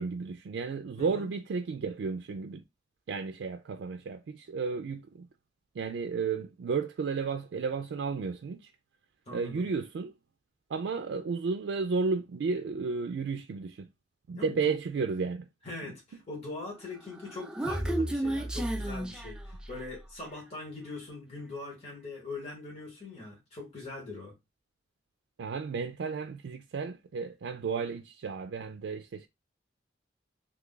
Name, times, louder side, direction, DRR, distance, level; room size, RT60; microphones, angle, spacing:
voice 1, 0.0-2.6 3.1-5.3 5.7-8.7 9.3-10.1 10.7-13.9 14.3-15.4 15.8-15.9 25.4-29.3, right 5 dB, 85° right, 0.3 m, -33 dB
voice 2, 1.0-1.3 9.3-9.7 14.3-14.7 15.6-24.3, left 2 dB, 35° left, 1.5 m, -42 dB
Human voice, 17.0-20.0, right 1 dB, 5° right, 0.3 m, -33 dB
3.0 x 2.3 x 3.7 m
head